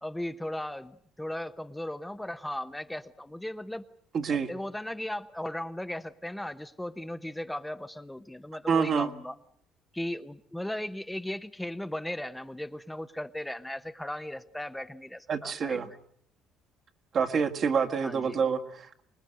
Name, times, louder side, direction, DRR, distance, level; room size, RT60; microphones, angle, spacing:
voice 1, 0.0-3.9 4.3-9.4 9.9-15.8 18.0-18.4, left 1 dB, 5° left, 9 dB, 0.9 m, -37 dB
voice 2, 4.1-4.5 8.7-9.1 15.3-15.9 17.1-19.0, right 6 dB, 55° right, 5 dB, 2.0 m, -27 dB
25.0 x 20.5 x 7.9 m, 0.64 s
hypercardioid pair, 65°, 0 cm